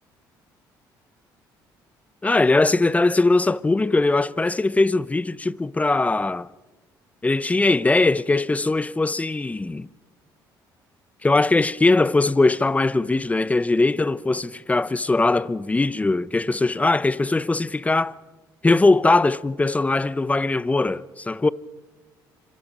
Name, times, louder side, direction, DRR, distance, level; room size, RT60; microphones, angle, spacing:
voice 1, 2.2-6.5 7.2-9.9 11.2-18.2 18.6-21.5, left 3 dB, 15° left, 0.8 m, -20 dB
26.5 x 25.5 x 5.4 m
supercardioid pair, 75°, 9 cm